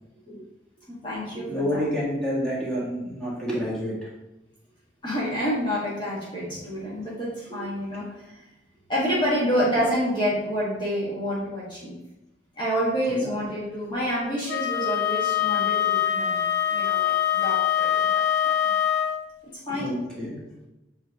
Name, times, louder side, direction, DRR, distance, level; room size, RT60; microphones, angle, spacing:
voice 1, 0.9-1.8 5.0-8.4 8.9-12.0 12.6-16.4 16.7-17.1 17.4-18.5 19.7-20.0, equal, 25° left, -7 dB, 1.7 m, -28 dB
voice 2, 1.5-4.1 7.6-7.7 13.1-13.3 19.7-20.4, equal, 5° left, -8 dB, 2.0 m, -29 dB
Wind instrument woodwind instrument, 14.5-19.2, left 10 dB, 65° left, 0.4 m, -24 dB
7.4 x 3.4 x 3.7 m, 0.97 s
head